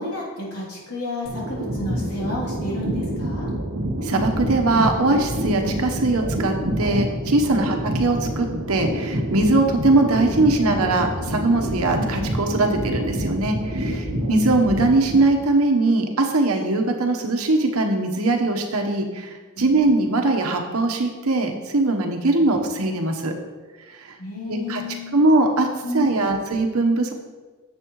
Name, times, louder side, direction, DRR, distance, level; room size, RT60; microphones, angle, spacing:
voice 1, 0.0-3.5 7.5-7.7 22.5-22.6 24.2-25.2 25.8-26.1, left 1 dB, 85° left, -5 dB, 3.1 m, -31 dB
sound 1, 1.2-15.5, equal, 60° right, 1.2 m, -27 dB
voice 2, 4.0-23.3 23.9-24.2 24.5-24.8 25.1-25.7 25.9-27.1, right 2 dB, 80° right, 3 dB, 1.1 m, -21 dB
10.5 x 7.5 x 3.1 m, 1.3 s
head